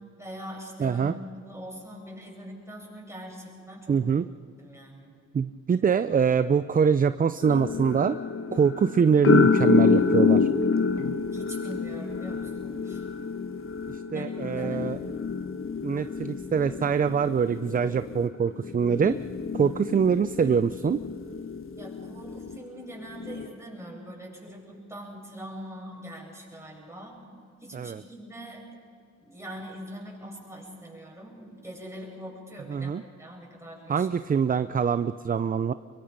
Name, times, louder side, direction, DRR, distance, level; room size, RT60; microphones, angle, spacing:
voice 1, 0.2-4.0 4.6-5.2 11.3-13.0 14.1-15.0 21.8-27.2 27.6-28.6 29.2-34.1, equal, 10° right, -2 dB, 7.8 m, -42 dB
voice 2, 0.8-1.1 3.9-4.2 5.3-8.2 8.5-10.5 13.9-15.0 15.8-19.2 19.5-21.0 27.7-28.0 32.7-33.0 33.9-35.7, right 6 dB, 30° right, 12 dB, 0.6 m, -24 dB
sound 1, 7.4-22.6 23.1-23.5, left 5 dB, 45° left, 1.4 m, -27 dB
24.0 x 23.0 x 5.4 m, 2.4 s
cardioid pair, 90°, 30 cm